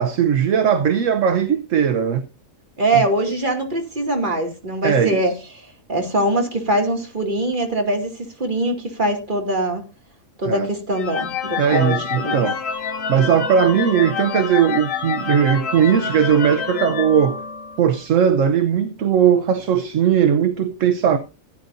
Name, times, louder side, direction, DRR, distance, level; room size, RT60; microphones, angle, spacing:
voice 1, 0.0-2.3 2.9-3.0 4.8-5.2 10.4-10.7 11.6-12.6 13.1-17.4 17.8-21.2, right 8 dB, 70° right, 1.1 m, -18 dB
voice 2, 2.8-5.3 5.9-9.8 10.4-11.9 12.2-12.5, right 1 dB, 35° right, 2.5 m, -22 dB
sound 1, 10.9-17.9, left 7 dB, 70° left, 1.6 m, -27 dB
16.0 x 9.5 x 2.6 m
omnidirectional pair, 1.4 m